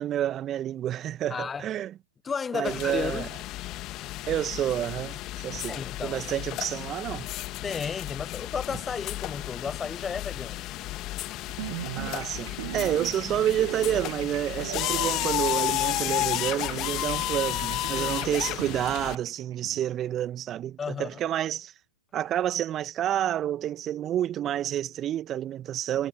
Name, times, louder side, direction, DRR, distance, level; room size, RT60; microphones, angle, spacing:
voice 1, 0.0-1.9 2.5-3.3 4.3-7.3 12.0-21.7 22.1-26.1, right 11 dB, 25° right, 1.9 m, -29 dB
voice 2, 1.3-1.7 2.2-3.3 5.7-6.2 7.6-10.7 17.9-18.1 20.8-21.2, left 6 dB, 15° left, 0.9 m, -33 dB
sound 1, 2.6-19.1, left 17 dB, 35° left, 1.6 m, -32 dB
sound 2, 11.5-19.8, right 16 dB, 50° right, 1.6 m, -39 dB
figure-of-eight pair, 105°, 0 cm